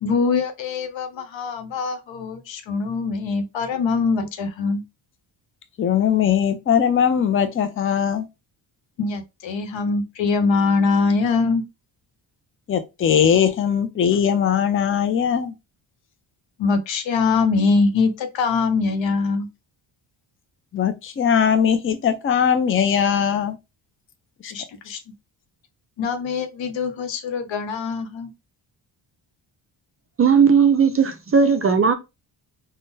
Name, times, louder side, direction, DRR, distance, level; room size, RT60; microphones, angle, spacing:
voice 1, 0.0-4.8 9.0-11.6 16.6-19.5 24.5-25.0 26.0-28.3, left 4 dB, 70° left, 0.8 m, -23 dB
voice 2, 5.8-8.3 12.7-15.5 20.7-23.5 24.4-24.5, left 8 dB, 30° left, 0.4 m, -20 dB
voice 3, 30.2-31.9, right 6 dB, 30° right, 0.4 m, -16 dB
3.5 x 2.2 x 2.7 m
cardioid pair, 95°, 47 cm